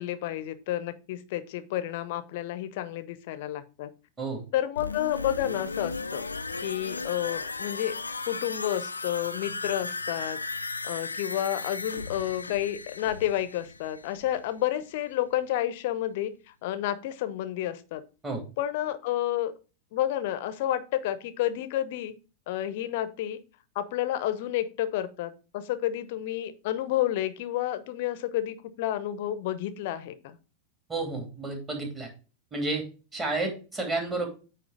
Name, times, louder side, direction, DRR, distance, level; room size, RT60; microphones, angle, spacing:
voice 1, 0.0-3.9 4.5-6.2 6.6-8.0 8.3-10.4 10.8-16.3 16.6-18.0 18.6-19.5 19.9-22.1 22.5-23.4 23.7-30.4, left 12 dB, 50° left, 12 dB, 0.8 m, -30 dB
sound 1, 4.8-14.5 14.8-14.9, left 3 dB, 80° left, 0.4 m, -36 dB
voice 2, 30.9-32.1 32.5-32.8 33.1-34.3, right 3 dB, 20° right, 1 dB, 2.7 m, -31 dB
8.9 x 3.2 x 4.9 m, 0.34 s
figure-of-eight pair, 90°, 0 cm